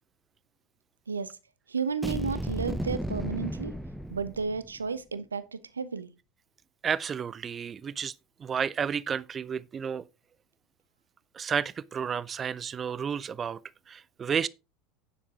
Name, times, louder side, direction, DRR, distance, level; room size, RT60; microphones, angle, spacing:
voice 1, 1.1-1.4 1.7-3.7 4.1-6.1, right 5 dB, 80° right, 0.7 m, -32 dB
sound 1, 2.0-4.8, equal, 5° right, 0.7 m, -34 dB
voice 2, 6.8-8.1 8.4-10.0 11.3-13.6 13.9-14.5, right 7 dB, 30° right, 0.4 m, -31 dB
9.6 x 7.4 x 3.6 m
figure-of-eight pair, 75°, 0 cm